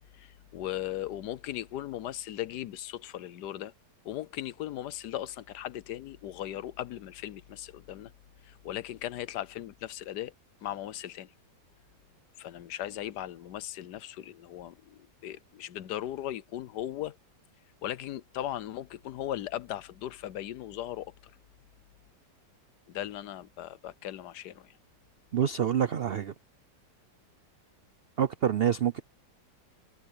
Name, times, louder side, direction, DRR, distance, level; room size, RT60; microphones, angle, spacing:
voice 1, 0.1-3.7 4.0-8.1 8.4-10.3 10.6-11.3 12.4-17.2 17.8-21.3 22.9-24.8, left 12 dB, 75° left, 1.3 m, -38 dB
voice 2, 25.3-26.3 28.2-29.0, right 9 dB, 75° right, 0.5 m, -26 dB
omnidirectional pair, 1.8 m